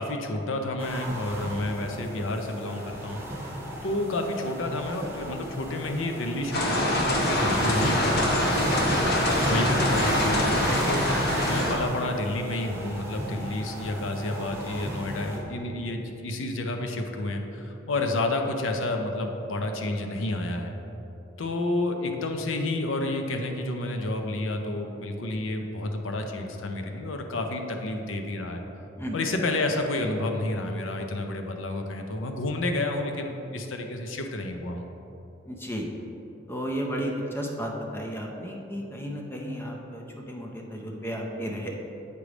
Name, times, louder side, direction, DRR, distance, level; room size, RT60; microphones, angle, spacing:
voice 1, 0.0-3.2 3.8-8.5 9.5-11.0 11.4-20.7 21.4-28.6 29.1-34.9, left 2 dB, 75° left, 4 dB, 0.6 m, -30 dB
sound 1, 0.8-15.4, equal, 10° right, 1.2 m, -33 dB
sound 2, 6.5-11.7, left 1 dB, 55° left, 1.0 m, -24 dB
voice 2, 35.4-35.9 36.5-41.8, equal, 10° left, 0 dB, 0.6 m, -33 dB
8.3 x 3.3 x 5.0 m, 3.0 s
head